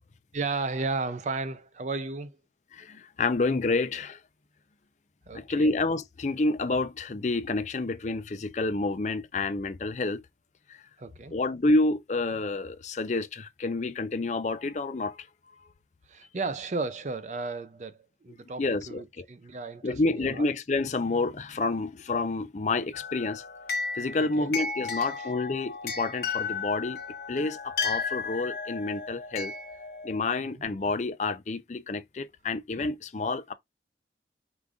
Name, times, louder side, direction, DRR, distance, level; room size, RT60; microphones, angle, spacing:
voice 1, 0.3-2.4 5.3-5.7 11.0-11.3 16.1-20.5 24.2-24.5 25.0-25.3 30.4-30.7, right 3 dB, 40° right, 0.5 m, -34 dB
voice 2, 2.7-4.2 5.3-10.2 11.3-15.2 18.6-19.2 19.8-23.4 24.0-27.0 27.3-29.5 30.0-33.5, left 3 dB, 40° left, 0.5 m, -29 dB
sound 1, 22.9-30.2, left 5 dB, 65° left, 1.1 m, -34 dB
5.0 x 2.5 x 3.6 m
head